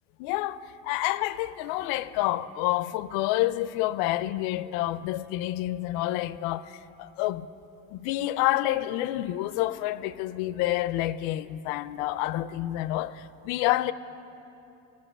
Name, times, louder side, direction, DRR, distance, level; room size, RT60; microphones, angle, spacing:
voice 1, 0.2-7.5 7.9-13.9, left 15 dB, 80° left, 0.5 m, -28 dB
14.5 x 5.3 x 9.0 m
supercardioid pair, 105°, 34 cm